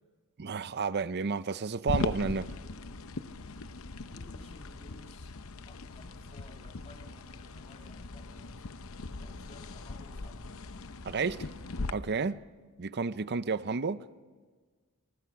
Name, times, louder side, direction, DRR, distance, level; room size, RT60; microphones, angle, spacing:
voice 1, 0.4-2.5 11.0-11.5 11.9-12.4 12.8-14.0, right 4 dB, 50° right, 0.6 m, -31 dB
sound 1, 1.9-11.9, left 3 dB, 65° left, 0.8 m, -39 dB
voice 2, 4.1-5.4 5.6-10.7, left 1 dB, 30° left, 3.1 m, -56 dB
26.0 x 23.5 x 5.9 m
head